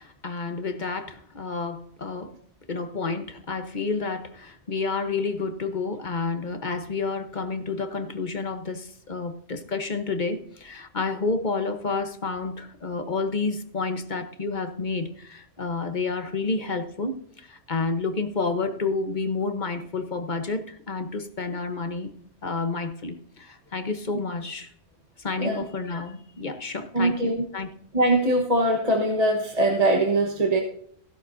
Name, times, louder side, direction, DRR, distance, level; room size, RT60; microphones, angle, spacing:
voice 1, 0.0-2.3 2.7-22.1 22.4-24.7 25.2-27.7, left 4 dB, 45° left, 8 dB, 1.1 m, -30 dB
voice 2, 26.9-27.4 27.9-30.6, right 1 dB, 35° right, 2 dB, 1.3 m, -22 dB
16.5 x 11.5 x 2.7 m, 0.66 s
omnidirectional pair, 1.2 m